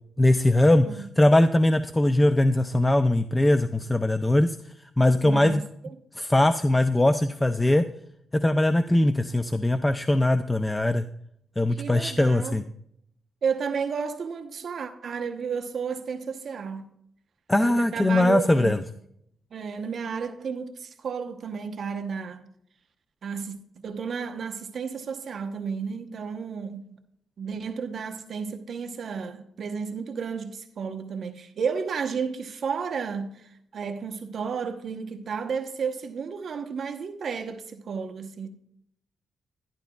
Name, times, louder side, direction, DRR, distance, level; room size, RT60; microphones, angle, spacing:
voice 1, 0.2-4.6 5.0-5.6 6.1-7.9 8.3-11.0 11.6-12.6 17.5-18.8, left 1 dB, 10° left, 0.3 m, -21 dB
voice 2, 5.2-5.6 11.7-12.6 13.4-16.9 17.6-18.7 19.5-22.4 23.2-23.6 23.8-26.8 27.4-38.5, right 6 dB, 55° right, 0.9 m, -32 dB
11.5 x 11.5 x 2.3 m
cardioid pair, 120°, 0 cm